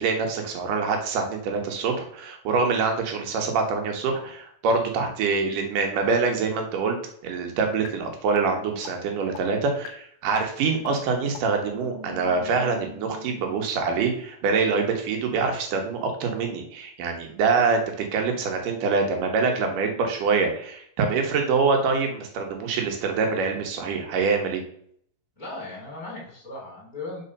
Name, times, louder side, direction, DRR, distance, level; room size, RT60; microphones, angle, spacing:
voice 1, 0.0-7.0 7.2-17.8 18.1-24.6, right 4 dB, 80° right, 3 dB, 2.7 m, -25 dB
sound 1, 7.9-8.0 8.4-8.5 8.9-9.0 9.4-9.5 9.9-10.0 10.4-10.5 10.9-11.0 11.4-11.5 11.9-13.6, left 4 dB, 80° left, 2.3 m, -41 dB
voice 2, 25.4-27.2, left 2 dB, 15° left, -5 dB, 3.1 m, -37 dB
5.6 x 4.6 x 5.3 m, 0.64 s
omnidirectional pair, 3.7 m